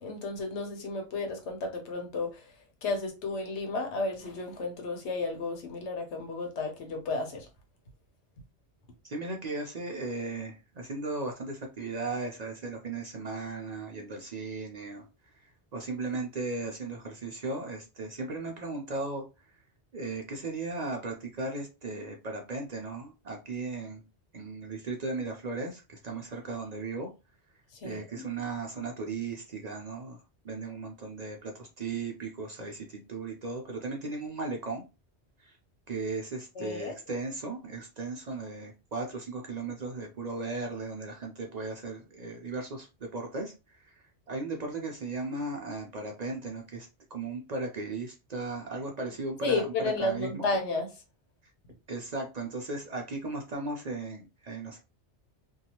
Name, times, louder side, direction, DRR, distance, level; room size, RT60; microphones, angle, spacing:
voice 1, 0.0-2.5 2.8-7.5 27.8-28.3 36.6-36.9 49.4-50.9, left 3 dB, 90° left, 1.1 m, -32 dB
voice 2, 9.0-15.1 15.4-19.3 19.9-24.0 24.3-27.1 27.8-30.2 30.4-34.8 35.4-35.6 35.9-49.7 50.0-50.5 51.9-54.8, right 3 dB, 50° right, 0.5 m, -36 dB
2.7 x 2.3 x 2.9 m
omnidirectional pair, 1.1 m